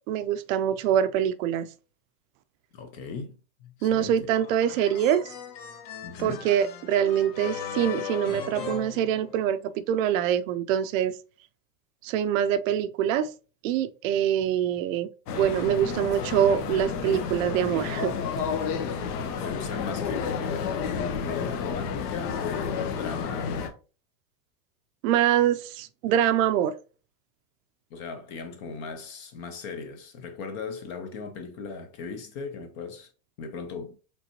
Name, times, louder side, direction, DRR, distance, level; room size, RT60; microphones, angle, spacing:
voice 1, 0.1-1.7 3.8-5.3 6.2-11.2 12.0-13.3 13.6-15.1 15.3-18.1 25.0-26.7, right 10 dB, 55° right, 0.5 m, -24 dB
voice 2, 2.7-4.3 6.0-6.5 19.3-23.7 27.9-33.1 33.4-34.0, left 4 dB, 30° left, 0.4 m, -38 dB
sound 1, 4.4-9.7, left 7 dB, 50° left, 1.2 m, -38 dB
sound 2, 15.3-23.7, left 6 dB, 70° left, 1.1 m, -31 dB
5.3 x 3.3 x 2.8 m
supercardioid pair, 140°, 48 cm